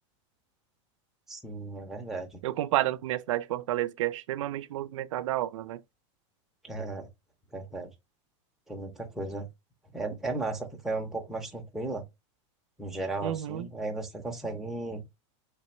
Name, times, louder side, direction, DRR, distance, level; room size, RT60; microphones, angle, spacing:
voice 1, 1.3-2.4 6.6-7.1 7.5-7.9 8.7-9.5 9.9-12.0 12.8-15.0, right 2 dB, ahead, 0.6 m, -35 dB
voice 2, 2.4-5.8 13.2-13.7, right 14 dB, 90° right, 0.5 m, -30 dB
3.4 x 3.3 x 3.0 m
supercardioid pair, 170°, 16 cm